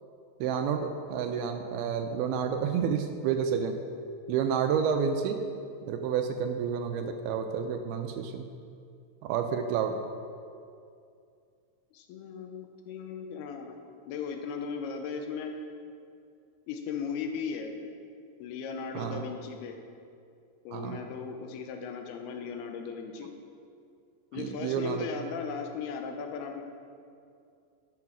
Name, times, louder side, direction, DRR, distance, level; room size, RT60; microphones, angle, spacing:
voice 1, 0.4-3.8 4.3-5.4 5.9-8.5 9.2-10.0 19.0-19.2 20.7-21.1 24.3-25.1, right 7 dB, 85° right, 6 dB, 2.3 m, -30 dB
voice 2, 11.9-13.8 14.1-15.5 16.7-17.7 18.4-19.8 20.7-23.3 24.3-26.6, left 6 dB, 85° left, 4 dB, 2.6 m, -37 dB
10.5 x 5.8 x 6.1 m, 2.4 s
omnidirectional pair, 4.7 m